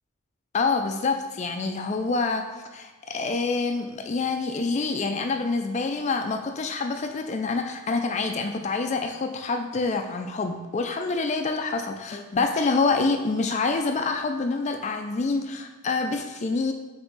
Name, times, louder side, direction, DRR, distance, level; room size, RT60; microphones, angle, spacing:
voice 1, 0.5-2.5 2.7-16.7, left 3 dB, 35° left, 6 dB, 0.3 m, -26 dB
8.0 x 3.4 x 4.0 m, 1.2 s
head